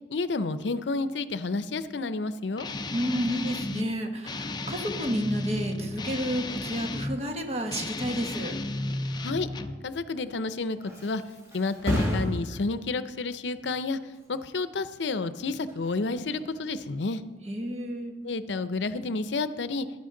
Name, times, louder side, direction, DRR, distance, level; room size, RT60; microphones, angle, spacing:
voice 1, 0.1-2.7 9.2-9.5 9.8-11.2 11.5-17.2 18.2-19.9, left 3 dB, 80° left, 13 dB, 0.6 m, -30 dB
Guitar, 2.6-3.9 4.2-7.2 7.6-9.8, left 2 dB, 25° left, 0.5 m, -34 dB
voice 2, 2.9-8.6 17.4-18.2, equal, 35° right, 4 dB, 1.3 m, -31 dB
Thump thud, 10.3-17.7 18.1-18.6, equal, 15° right, 4.3 m, -35 dB
15.0 x 11.0 x 3.8 m, 1.3 s
head